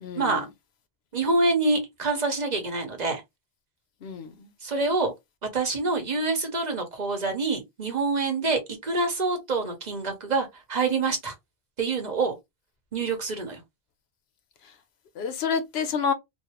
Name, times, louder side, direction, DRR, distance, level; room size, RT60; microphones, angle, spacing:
voice 1, 0.0-0.5 4.0-4.5 15.2-16.1, left 6 dB, 80° left, 0.9 m, -29 dB
voice 2, 1.1-3.2 4.6-5.1 5.5-11.3 11.8-12.3 12.9-13.6, right 3 dB, 45° right, 0.9 m, -26 dB
3.1 x 2.1 x 2.8 m
omnidirectional pair, 1.0 m